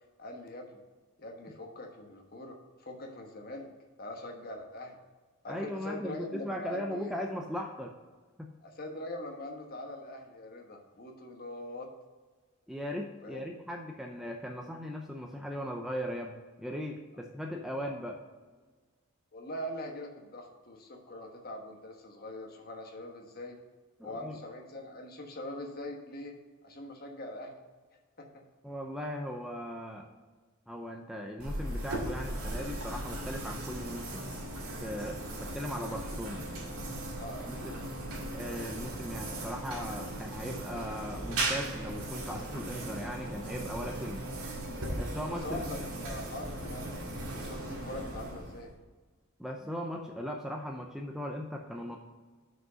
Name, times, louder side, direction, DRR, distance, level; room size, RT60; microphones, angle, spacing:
voice 1, 0.2-0.8 1.2-3.7 4.0-5.0 5.4-7.2 8.6-11.9 13.2-13.4 19.3-23.6 24.0-26.4 26.6-27.5 28.2-28.3 37.2-37.9 45.3-48.7, left 1 dB, 40° left, 2 dB, 1.2 m, -43 dB
voice 2, 5.5-7.9 8.4-8.5 12.7-18.2 24.0-24.4 28.6-30.1 30.7-34.4 34.8-36.4 37.5-37.8 38.3-44.3 45.0-45.7 49.4-52.0, equal, ahead, 1 dB, 0.5 m, -38 dB
sound 1, 31.4-48.8, right 1 dB, 80° right, 2.1 m, -38 dB
6.2 x 5.3 x 6.7 m, 1.4 s
head